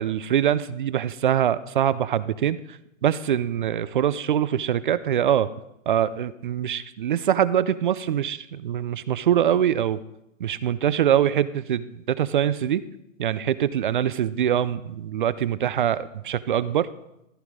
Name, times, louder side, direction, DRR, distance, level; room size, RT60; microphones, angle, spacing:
voice 1, 0.0-2.6 3.0-5.5 5.9-10.0 10.4-12.8 13.2-16.9, right 10 dB, 40° right, 16 dB, 0.5 m, -23 dB
14.5 x 9.5 x 5.0 m, 0.86 s
hypercardioid pair, 150°, 40 cm